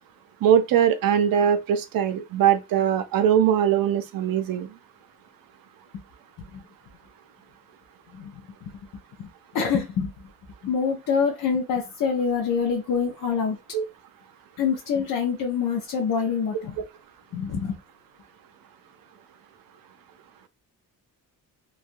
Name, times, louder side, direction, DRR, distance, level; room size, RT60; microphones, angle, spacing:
voice 1, 0.4-4.7 13.7-13.8, right 9 dB, 75° right, 0.5 m, -21 dB
voice 2, 9.2-10.3 10.6-13.6 14.6-16.8 17.3-17.8, left 6 dB, 60° left, 0.7 m, -26 dB
3.1 x 2.4 x 2.5 m
wide cardioid pair, 170°, 36 cm